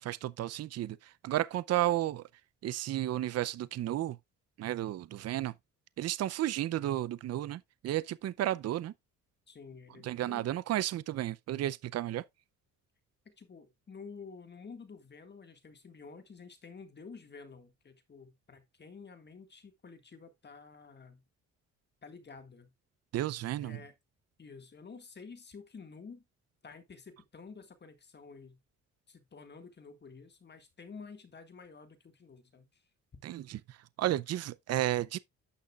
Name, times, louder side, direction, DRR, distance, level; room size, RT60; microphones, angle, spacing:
voice 1, 0.0-2.2 2.6-4.2 4.6-5.5 6.0-8.9 10.0-12.2 23.1-23.8 33.2-35.2, right 13 dB, 55° right, 0.5 m, -33 dB
voice 2, 9.5-10.5 13.3-21.2 22.0-22.7 23.6-23.9 24.4-26.2 26.6-28.6 29.1-32.8, left 5 dB, 35° left, 1.8 m, -50 dB
11.0 x 6.4 x 2.4 m
cardioid pair, 90°, 30 cm